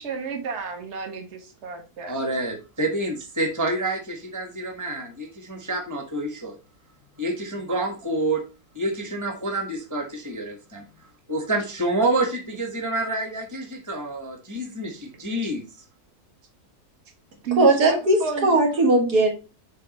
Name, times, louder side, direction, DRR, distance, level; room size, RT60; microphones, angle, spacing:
voice 1, 0.0-2.1 15.4-15.5 17.4-18.5, right 6 dB, 45° right, 3 dB, 1.6 m, -31 dB
voice 2, 2.1-6.6 7.2-8.4 8.7-10.8 11.3-15.6, right 2 dB, 10° right, 3 dB, 1.3 m, -28 dB
voice 3, 17.6-19.3, right 2 dB, 75° right, 1 dB, 2.4 m, -18 dB
7.4 x 4.2 x 4.2 m, 0.31 s
omnidirectional pair, 1.7 m